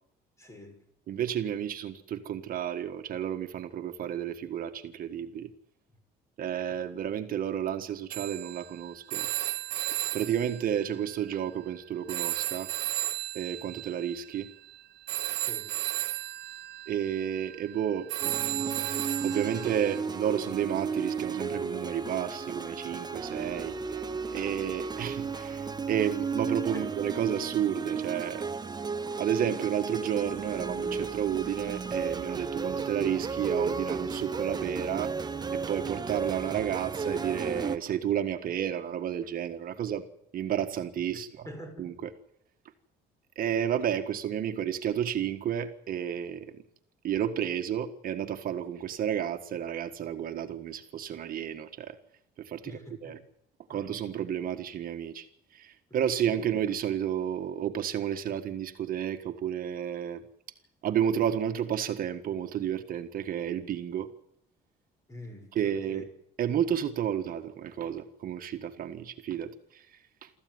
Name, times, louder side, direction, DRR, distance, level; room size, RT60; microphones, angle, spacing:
voice 1, 0.4-0.8 13.7-13.8 15.4-15.8 26.7-26.9 41.4-41.9 52.6-53.2 53.7-53.9 55.9-56.0 65.1-66.1, left 1 dB, 15° left, 6.2 m, -46 dB
voice 2, 1.1-5.5 6.4-9.3 9.9-12.7 13.3-14.5 16.9-18.8 19.2-23.8 24.3-28.5 29.2-35.1 35.5-40.1 40.3-41.5 41.8-41.9 43.3-46.6 47.0-52.0 52.4-53.2 53.7-55.3 55.5-60.2 60.8-64.1 65.5-66.0 66.4-70.3, right 9 dB, 55° right, 1.6 m, -31 dB
Telephone, 8.1-11.7 12.1-20.0, right 15 dB, 80° right, 1.0 m, -35 dB
sound 1, 18.2-37.8, right 5 dB, 25° right, 1.1 m, -34 dB
25.0 x 14.5 x 9.6 m
cardioid pair, 110°, 17 cm